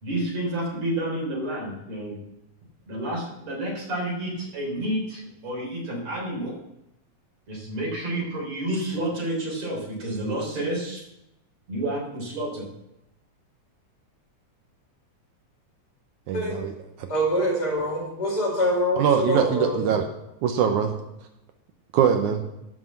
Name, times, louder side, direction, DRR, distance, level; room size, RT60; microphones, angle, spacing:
voice 1, 0.0-2.2 2.9-6.5 7.5-11.0 11.7-12.6, right 1 dB, 55° right, -2 dB, 4.9 m, -30 dB
voice 2, 16.3-16.7 17.0-17.1 19.0-20.0 20.4-20.9 21.9-22.4, right 8 dB, 75° right, 5 dB, 2.3 m, -22 dB
voice 3, 17.1-19.9, equal, 30° left, -5 dB, 5.5 m, -25 dB
13.0 x 6.0 x 7.4 m, 0.86 s
omnidirectional pair, 3.5 m